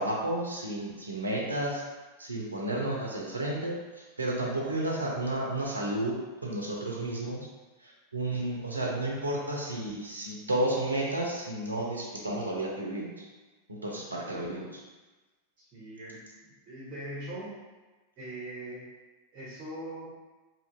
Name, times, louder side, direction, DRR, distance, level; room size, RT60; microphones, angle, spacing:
voice 1, 0.0-1.8 2.2-7.5 7.8-13.2 13.7-14.8, right 1 dB, 80° right, -2 dB, 0.5 m, -32 dB
voice 2, 15.6-17.6 18.2-18.9 19.3-20.1, right 1 dB, 35° right, -7 dB, 0.7 m, -41 dB
2.7 x 2.4 x 2.6 m, 1.2 s
figure-of-eight pair, 90°, 0 cm